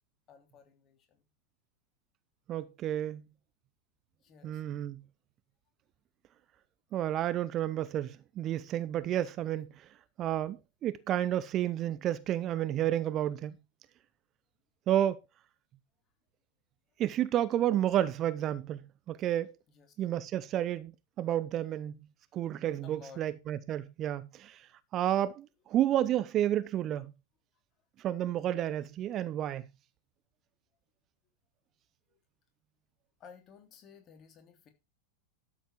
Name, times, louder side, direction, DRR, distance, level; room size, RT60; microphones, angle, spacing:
voice 1, 0.3-1.3 4.2-4.6 19.7-19.9 22.8-23.2 33.2-34.7, left 6 dB, 30° left, 3.1 m, -54 dB
voice 2, 2.5-3.2 4.4-5.0 6.9-9.9 10.2-13.5 14.9-15.2 17.0-18.8 19.1-19.5 20.0-20.9 21.2-22.0 22.3-24.7 24.9-27.1 28.0-29.6, right 12 dB, 30° right, 0.6 m, -31 dB
12.5 x 7.3 x 4.5 m
figure-of-eight pair, 90°, 0 cm